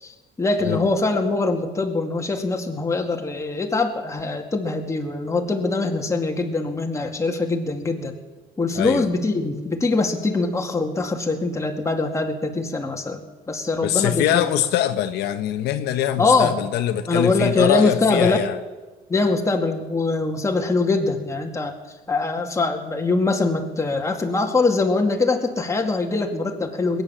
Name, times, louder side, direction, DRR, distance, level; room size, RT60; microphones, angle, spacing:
voice 1, 0.0-8.1 8.6-14.5 16.2-16.5 17.1-18.4 19.1-21.7 22.1-27.0, left 3 dB, 15° left, 3 dB, 2.2 m, -23 dB
voice 2, 8.7-9.1 13.8-18.6, left 11 dB, 80° left, 8 dB, 1.0 m, -23 dB
20.5 x 9.5 x 7.3 m, 1.3 s
cardioid pair, 110°, 17 cm